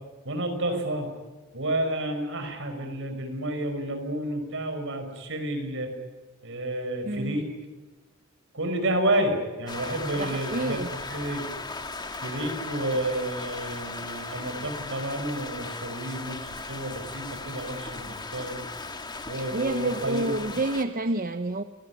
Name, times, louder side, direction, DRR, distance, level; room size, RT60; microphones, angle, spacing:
voice 1, 0.2-1.1 1.5-5.9 6.4-7.4 8.5-11.4 12.2-18.6 19.3-20.4, right 1 dB, 65° right, 6 dB, 5.5 m, -30 dB
voice 2, 7.0-7.4 10.2-11.0 19.5-21.6, right 2 dB, 45° right, 9 dB, 0.9 m, -29 dB
Rain, 9.7-20.8, left 3 dB, 20° left, 1.7 m, -37 dB
28.0 x 18.0 x 9.7 m, 1.2 s
head